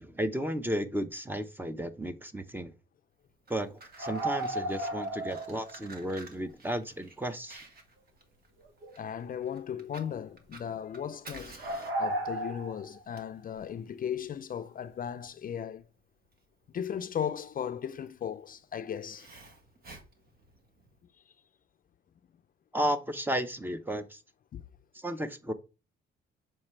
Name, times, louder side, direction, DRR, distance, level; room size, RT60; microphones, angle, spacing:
voice 1, 0.0-2.7 3.5-3.7 4.0-7.6 22.7-24.2 24.9-25.5, equal, 10° right, 0.8 m, -33 dB
Fire, 3.3-21.0, right 2 dB, 50° right, 1.7 m, -53 dB
sound 1, 4.0-5.8 6.0-6.1 8.6-9.3 9.7-10.0 11.6-13.0, right 1 dB, 75° right, 1.4 m, -34 dB
voice 2, 9.0-11.5 12.0-15.8 16.7-19.3 24.5-24.6, left 8 dB, 45° left, 0.5 m, -36 dB
7.1 x 4.5 x 3.2 m
cardioid pair, 90°, 20 cm